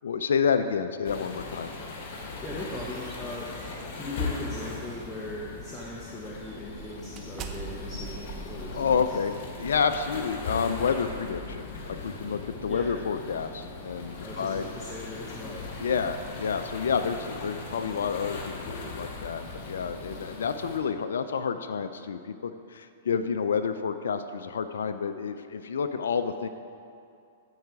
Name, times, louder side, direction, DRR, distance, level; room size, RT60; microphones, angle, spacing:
voice 1, 0.0-1.7 8.7-14.7 15.8-26.5, left 6 dB, 80° left, 8 dB, 0.4 m, -29 dB
sound 1, 1.0-20.8, left 3 dB, 50° left, 1.7 m, -39 dB
voice 2, 2.4-3.6 3.9-9.0 12.7-12.9 14.2-15.7, left 1 dB, 5° left, -7 dB, 1.2 m, -39 dB
sound 2, 2.4-5.2 5.7-5.9 6.3-10.6, right 6 dB, 35° right, 0.7 m, -45 dB
14.0 x 4.8 x 4.7 m, 2.5 s
hypercardioid pair, 120°, 0 cm